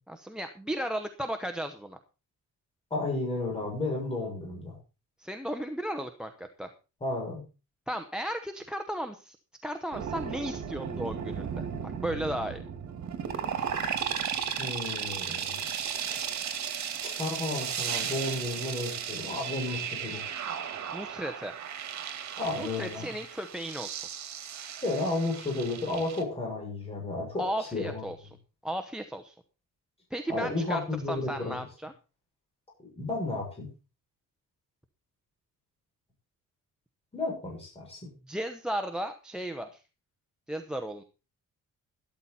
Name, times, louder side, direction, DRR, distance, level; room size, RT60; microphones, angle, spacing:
voice 1, 0.1-2.0 5.2-6.7 7.9-9.4 9.6-12.6 20.9-21.5 22.3-24.1 27.4-28.2 28.6-29.4 30.1-30.8 31.1-31.9 38.3-39.8 40.5-41.0, equal, ahead, 8 dB, 0.9 m, -35 dB
voice 2, 2.9-4.8 7.0-7.4 14.6-15.6 16.1-16.2 17.0-20.2 22.4-23.2 24.8-28.0 30.3-31.5 33.0-33.7 37.1-38.0, left 2 dB, 20° left, -2 dB, 7.1 m, -32 dB
sound 1, 9.9-26.2, right 8 dB, 60° right, 2.2 m, -35 dB
13.0 x 13.0 x 4.2 m, 0.32 s
cardioid pair, 175°, 32 cm